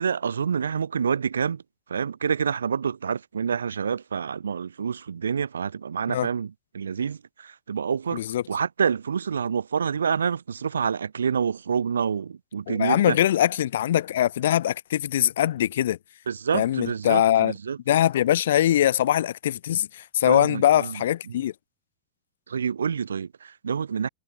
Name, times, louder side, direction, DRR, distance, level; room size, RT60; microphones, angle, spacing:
voice 1, 0.0-1.6 1.9-8.2 8.5-13.2 16.3-17.8 20.3-21.0 21.3-21.4 22.5-24.1, right 6 dB, 70° right, 0.8 m, -27 dB
voice 2, 8.1-8.4 12.7-16.0 16.5-17.5 17.9-21.5, left 12 dB, 60° left, 1.5 m, -22 dB
figure-of-eight pair, 90°, 0 cm